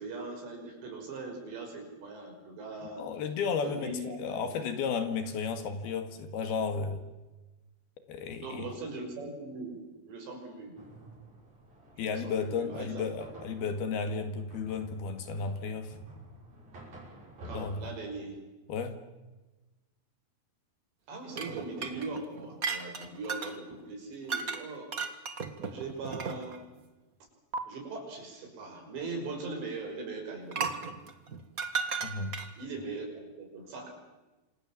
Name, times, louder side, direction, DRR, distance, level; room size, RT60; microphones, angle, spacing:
voice 1, 0.0-3.1 3.6-4.5 8.4-9.8 10.1-10.8 12.0-13.1 17.4-18.4 21.1-24.9 25.6-26.6 27.7-30.7 32.6-33.9, right 3 dB, 90° right, 3 dB, 8.0 m, -40 dB
voice 2, 3.0-3.9 4.2-7.0 8.1-8.7 12.0-16.0 17.4-17.9 18.7-19.1 32.0-32.4, left 5 dB, 70° left, 8 dB, 3.8 m, -33 dB
sound 1, 10.8-17.7, right 1 dB, 45° right, 7.8 m, -50 dB
sound 2, 21.3-23.6 24.3-24.6 24.9-26.6 27.5-27.6 30.5-32.6, right 5 dB, 70° right, 0.8 m, -35 dB
27.5 x 26.0 x 7.5 m, 1.1 s
omnidirectional pair, 4.9 m